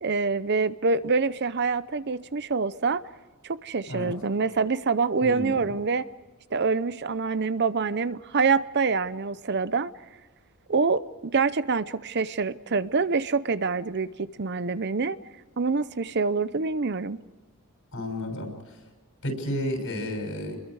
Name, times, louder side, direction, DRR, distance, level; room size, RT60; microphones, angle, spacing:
voice 1, 0.0-3.0 3.4-6.1 6.5-9.9 10.7-15.2 15.6-17.2, right 4 dB, 50° right, 15 dB, 0.7 m, -26 dB
voice 2, 5.2-5.7 17.9-18.8 19.2-20.6, left 1 dB, 65° left, 4 dB, 6.6 m, -32 dB
30.0 x 22.0 x 4.8 m, 1.2 s
head